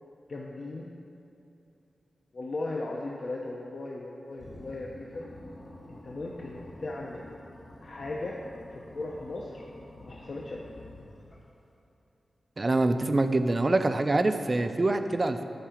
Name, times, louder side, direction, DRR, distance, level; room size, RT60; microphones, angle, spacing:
voice 1, 0.3-0.9 2.3-5.2 5.9-7.3 7.8-8.4 8.7-9.6 10.1-10.7, left 2 dB, 55° left, -2 dB, 0.6 m, -37 dB
sound 1, 4.4-11.6, left 1 dB, 35° left, 1.2 m, -48 dB
voice 2, 12.6-15.4, right 2 dB, 30° right, 8 dB, 0.4 m, -25 dB
10.5 x 4.8 x 5.0 m, 2.9 s
wide cardioid pair, 120°, 0 cm